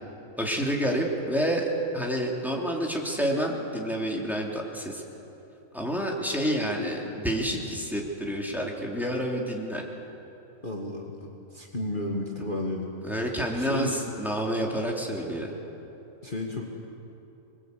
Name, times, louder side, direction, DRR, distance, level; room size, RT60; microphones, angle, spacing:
voice 1, 0.4-5.0 5.7-9.9 13.0-15.5, equal, ahead, -1 dB, 3.0 m, -29 dB
voice 2, 10.6-12.9 13.5-13.9 16.2-16.6, left 1 dB, 35° left, -1 dB, 2.0 m, -32 dB
26.0 x 21.5 x 8.4 m, 3.0 s
omnidirectional pair, 1.6 m